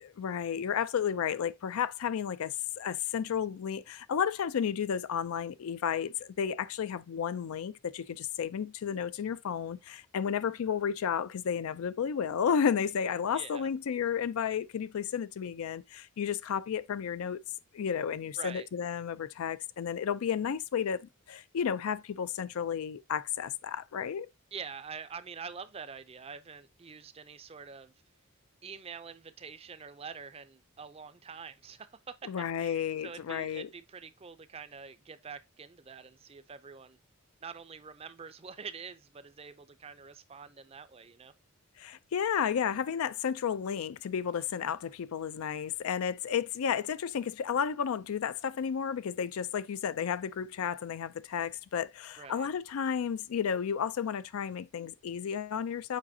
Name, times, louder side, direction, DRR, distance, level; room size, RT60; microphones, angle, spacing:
voice 1, 0.0-17.4 17.7-24.3 32.2-33.7 41.8-56.0, left 7 dB, 85° left, 0.4 m, -32 dB
voice 2, 13.3-13.7 18.4-18.7 24.5-27.9 28.6-32.3 32.6-37.0 37.4-41.3 52.2-52.5, right 6 dB, 25° right, 0.4 m, -45 dB
7.4 x 4.9 x 2.7 m
head